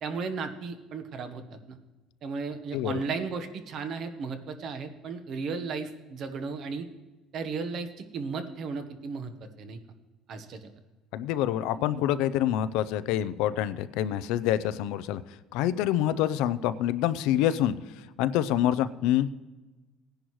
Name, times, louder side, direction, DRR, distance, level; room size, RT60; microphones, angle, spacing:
voice 1, 0.0-1.8 2.2-6.9 7.3-9.8 10.3-10.7, right 4 dB, 45° right, 7 dB, 1.1 m, -35 dB
voice 2, 2.7-3.0 11.1-19.3, left 12 dB, 80° left, 14 dB, 0.5 m, -27 dB
18.0 x 10.0 x 3.1 m, 1.2 s
cardioid pair, 145°, 0 cm